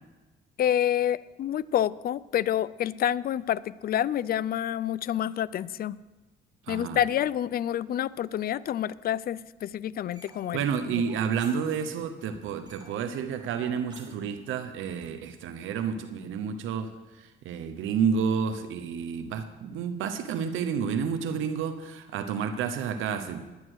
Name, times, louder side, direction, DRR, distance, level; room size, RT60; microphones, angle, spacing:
voice 1, 0.6-6.0 6.7-10.6 10.9-11.0, left 11 dB, 50° left, 19 dB, 0.4 m, -28 dB
voice 2, 6.7-7.0 10.5-23.5, right 7 dB, 85° right, 9 dB, 0.8 m, -30 dB
sound 1, 10.1-12.1 12.3-15.1, right 1 dB, 20° right, 3.4 m, -51 dB
11.0 x 9.7 x 6.3 m, 1.2 s
cardioid pair, 90°, 20 cm